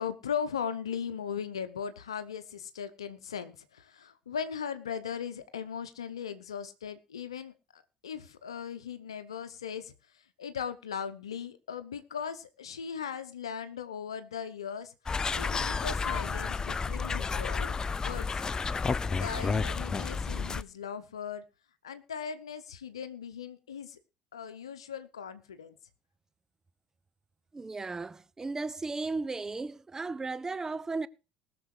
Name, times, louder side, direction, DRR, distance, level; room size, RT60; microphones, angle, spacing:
voice 1, 0.0-9.9 10.4-14.9 15.4-17.8 18.0-18.4 19.1-21.4 21.8-24.0 24.3-25.8, left 7 dB, 85° left, 0.8 m, -38 dB
sound 1, 15.1-20.6, left 4 dB, 25° left, 0.5 m, -31 dB
voice 2, 27.5-31.1, right 3 dB, 20° right, 0.6 m, -35 dB
19.0 x 6.8 x 4.7 m
hypercardioid pair, 60°, 3 cm